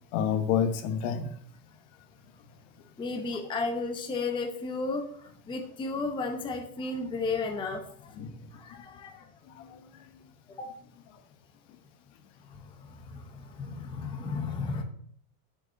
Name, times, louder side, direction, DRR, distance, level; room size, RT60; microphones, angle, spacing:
voice 1, 0.1-1.3 8.1-8.3 9.6-9.8, left 7 dB, 55° left, 9 dB, 1.3 m, -28 dB
voice 2, 3.0-8.2 8.5-9.3 10.6-10.7 12.5-14.8, left 3 dB, 10° left, 3 dB, 0.8 m, -34 dB
7.5 x 5.2 x 7.5 m, 0.63 s
cardioid pair, 165°, 44 cm